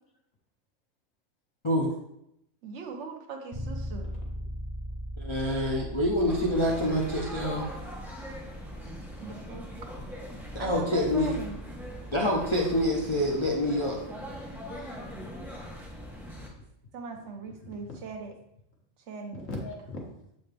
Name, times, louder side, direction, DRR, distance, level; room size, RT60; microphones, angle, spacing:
voice 1, 2.6-4.1 9.2-9.7 10.6-11.5 16.9-18.3 19.1-19.6, right 5 dB, 60° right, 3 dB, 1.1 m, -39 dB
Bass guitar, 3.5-13.4, equal, 45° right, 0.4 m, -41 dB
voice 2, 5.2-7.7 10.5-11.4 12.1-14.0 14.8-14.9, left 1 dB, 30° left, -2 dB, 0.5 m, -26 dB
sound 1, 6.3-16.5, equal, ahead, 0.9 m, -42 dB
voice 3, 7.9-8.6 15.2-15.5 17.6-18.0 19.4-20.0, left 2 dB, 75° left, -1 dB, 1.6 m, -41 dB
7.0 x 4.2 x 3.3 m, 0.80 s
omnidirectional pair, 1.4 m